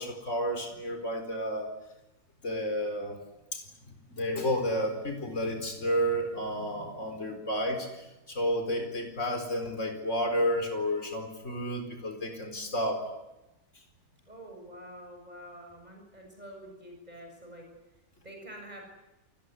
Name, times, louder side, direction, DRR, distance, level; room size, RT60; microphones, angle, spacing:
voice 1, 0.0-1.7 2.4-3.2 3.5-3.6 4.1-13.0, equal, 50° left, 5 dB, 4.7 m, -31 dB
voice 2, 14.3-17.7 18.2-18.9, equal, 25° right, 1 dB, 7.4 m, -47 dB
28.0 x 20.0 x 9.8 m, 0.97 s
omnidirectional pair, 1.6 m